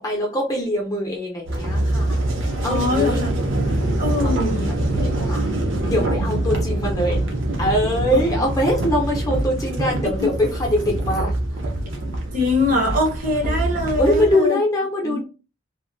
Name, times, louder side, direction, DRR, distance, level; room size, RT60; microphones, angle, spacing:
voice 1, 0.0-2.2 2.6-3.2 4.2-5.5 5.8-7.2 7.6-11.3 14.0-15.2, equal, 15° left, 0.6 m, -23 dB
sound 1, 1.5-14.3, right 1 dB, 75° right, 0.8 m, -24 dB
voice 2, 2.6-3.3 4.0-4.7 8.1-8.2 10.2-10.3 12.3-14.6 15.0-15.2, left 2 dB, 40° right, 0.8 m, -22 dB
2.8 x 2.6 x 2.6 m
head